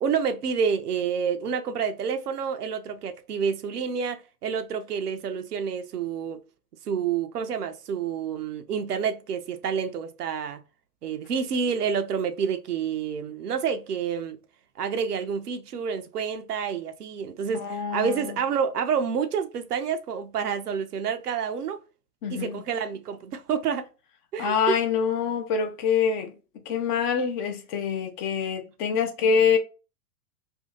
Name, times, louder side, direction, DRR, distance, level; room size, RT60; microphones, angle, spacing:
voice 1, 0.0-6.4 6.9-10.6 11.0-14.4 14.8-21.8 22.3-23.9 24.3-24.8, right 6 dB, 75° right, 0.7 m, -28 dB
voice 2, 17.6-18.4 22.2-22.6 24.4-26.3 26.7-29.6, left 6 dB, 30° left, 0.6 m, -25 dB
2.8 x 2.7 x 3.7 m
figure-of-eight pair, 100°, 48 cm